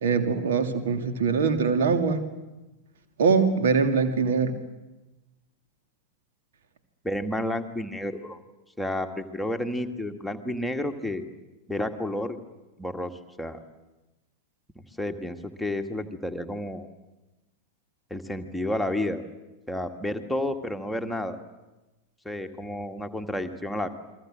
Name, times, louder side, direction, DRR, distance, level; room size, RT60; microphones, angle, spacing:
voice 1, 0.0-2.2 3.2-4.5, right 5 dB, 60° right, 7 dB, 2.5 m, -23 dB
voice 2, 7.0-8.4 8.8-11.3 11.7-12.4 12.8-13.1 13.4-13.6 14.8-16.9 18.1-19.2 19.7-21.4 22.3-23.9, left 1 dB, ahead, 4 dB, 2.0 m, -31 dB
29.5 x 23.0 x 7.7 m, 1.1 s
figure-of-eight pair, 90°, 0 cm